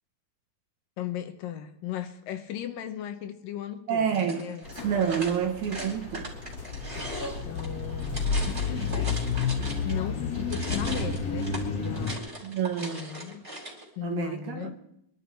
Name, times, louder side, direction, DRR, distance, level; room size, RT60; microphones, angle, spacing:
voice 1, 1.0-4.6 6.9-9.1 9.8-12.5 12.8-13.4 14.0-14.8, left 10 dB, 70° left, 8 dB, 2.5 m, -37 dB
voice 2, 3.9-4.5 4.8-6.4 12.4-13.2 14.0-14.8, right 8 dB, 60° right, 2 dB, 2.4 m, -28 dB
sound 1, 4.1-10.0 10.3-13.9, right 1 dB, 15° right, 4.0 m, -39 dB
sound 2, 4.6-12.2, left 5 dB, 30° left, 2.3 m, -31 dB
24.0 x 12.0 x 4.5 m, 0.75 s
omnidirectional pair, 4.3 m